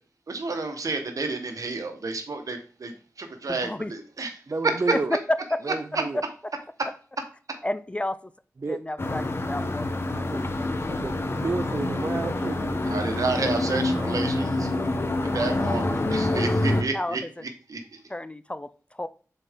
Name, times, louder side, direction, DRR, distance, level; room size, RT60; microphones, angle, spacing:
voice 1, 0.3-2.9 3.2-4.3 12.8-14.7 15.2-17.2 17.7-18.0, right 3 dB, 65° right, 6 dB, 1.1 m, -30 dB
voice 2, 3.5-3.9 5.3-5.6 7.6-8.2 8.7-10.1 16.9-17.3 18.1-18.7 19.0-19.1, left 1 dB, 20° left, 14 dB, 0.4 m, -31 dB
voice 3, 4.5-5.1 5.6-6.2 8.6-8.8 10.2-10.4 10.9-12.8, right 3 dB, 45° right, 8 dB, 0.6 m, -31 dB
sound 1, 9.0-16.8, left 2 dB, 40° left, 0.9 m, -27 dB
6.9 x 4.2 x 3.6 m, 0.40 s
cardioid pair, 45°, 6 cm